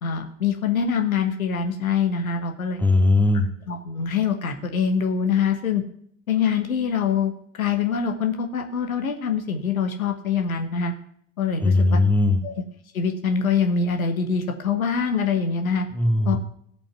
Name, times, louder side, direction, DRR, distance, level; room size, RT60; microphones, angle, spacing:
voice 1, 0.0-2.8 3.7-5.8 6.3-7.3 7.6-10.9 11.4-12.0 12.4-12.6 12.9-15.8 16.2-16.4, left 6 dB, 80° left, 5 dB, 1.3 m, -24 dB
voice 2, 2.8-3.5 11.6-12.4 15.9-16.4, left 2 dB, 5° left, 4 dB, 2.1 m, -19 dB
16.5 x 5.7 x 5.8 m, 0.65 s
figure-of-eight pair, 60°, 41 cm